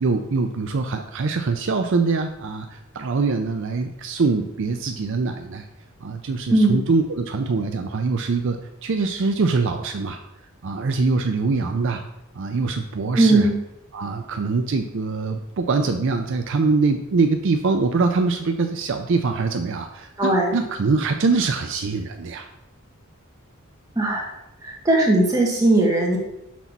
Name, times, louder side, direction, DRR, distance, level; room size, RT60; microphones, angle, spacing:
voice 1, 0.0-5.6 6.0-10.2 10.6-12.0 12.3-13.5 13.9-22.5, right 4 dB, 60° right, 5 dB, 0.5 m, -23 dB
voice 2, 13.1-13.5 20.2-20.5 23.9-24.3 24.8-26.2, right 2 dB, 15° right, -3 dB, 1.7 m, -18 dB
6.1 x 4.0 x 5.9 m, 0.90 s
head